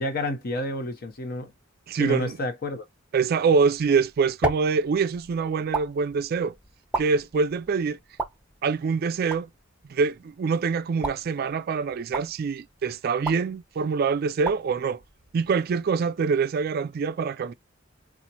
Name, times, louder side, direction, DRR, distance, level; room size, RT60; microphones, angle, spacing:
voice 1, 0.0-1.5 2.0-2.8, left 1 dB, 50° left, 0.8 m, -29 dB
voice 2, 1.9-2.4 3.1-6.5 7.0-8.0 8.6-9.5 9.9-15.0 15.3-17.5, right 5 dB, 50° right, 0.3 m, -25 dB
sound 1, 3.7-15.9, right 2 dB, 5° right, 0.7 m, -37 dB
4.1 x 2.4 x 2.8 m
head